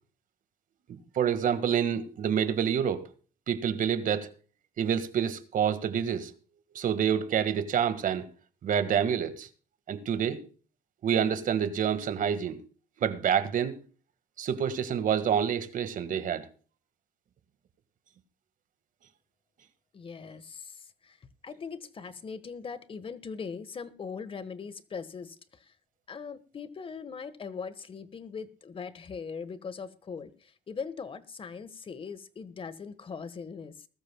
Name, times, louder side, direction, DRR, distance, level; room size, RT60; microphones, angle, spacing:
voice 1, 1.1-3.1 3.5-4.3 4.8-6.3 6.7-8.3 8.6-9.5 9.9-10.4 11.0-12.6 13.0-13.8 14.4-16.5, right 8 dB, 55° right, 1.9 m, -27 dB
voice 2, 19.9-25.7 26.1-33.9, left 5 dB, 35° left, 1.4 m, -40 dB
20.5 x 13.0 x 2.3 m
cardioid pair, 110°, 17 cm